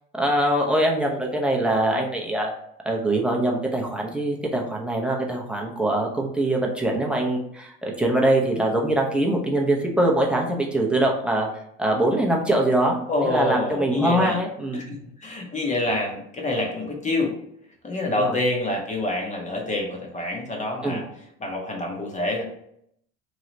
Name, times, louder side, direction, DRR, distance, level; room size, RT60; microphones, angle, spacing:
voice 1, 0.1-2.5 2.8-11.5 11.8-14.9 18.2-18.4 20.8-21.0, right 1 dB, 5° right, -1 dB, 0.7 m, -23 dB
voice 2, 13.1-14.4 14.7-17.3 17.8-21.0 21.4-22.4, left 2 dB, 20° left, 0 dB, 0.9 m, -27 dB
3.2 x 2.3 x 3.9 m, 0.73 s
supercardioid pair, 95°, 33 cm